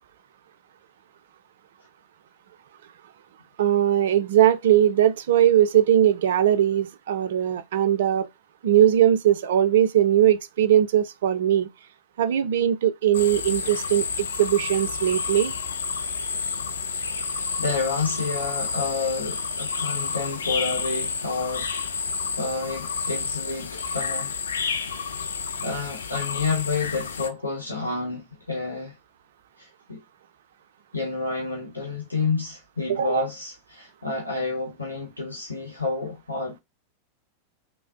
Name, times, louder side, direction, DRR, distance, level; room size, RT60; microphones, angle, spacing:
voice 1, 3.6-8.3 8.6-11.7 12.2-15.5 32.9-33.2, right 11 dB, 60° right, 0.3 m, -20 dB
sound 1, 13.1-27.3, left 5 dB, 70° left, 0.3 m, -30 dB
voice 2, 17.6-21.7 22.4-24.4 25.6-28.9 29.6-30.0 30.9-36.6, left 4 dB, 85° left, 0.8 m, -29 dB
3.2 x 2.0 x 2.3 m
figure-of-eight pair, 90°, 0 cm